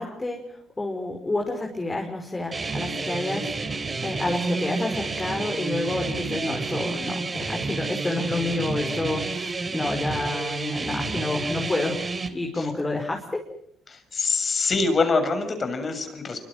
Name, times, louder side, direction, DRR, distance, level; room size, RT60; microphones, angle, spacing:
voice 1, 0.0-13.4, left 2 dB, 20° left, 1 dB, 5.5 m, -29 dB
sound 1, 2.5-12.3, right 3 dB, 30° right, 3.7 m, -30 dB
voice 2, 13.9-16.4, left 3 dB, 40° left, 9 dB, 6.8 m, -25 dB
26.5 x 25.0 x 7.6 m, 0.66 s
cardioid pair, 90°, 0 cm